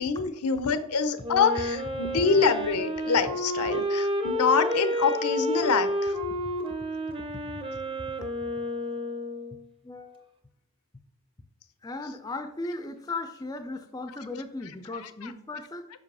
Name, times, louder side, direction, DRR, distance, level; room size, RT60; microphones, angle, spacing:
voice 1, 0.0-6.1, left 5 dB, 80° left, 12 dB, 0.6 m, -25 dB
Wind instrument woodwind instrument, 1.2-9.6, equal, 25° right, 0.7 m, -30 dB
voice 2, 9.8-10.3 11.8-15.9, left 2 dB, 15° left, 8 dB, 0.4 m, -37 dB
5.4 x 5.1 x 5.4 m, 0.80 s
head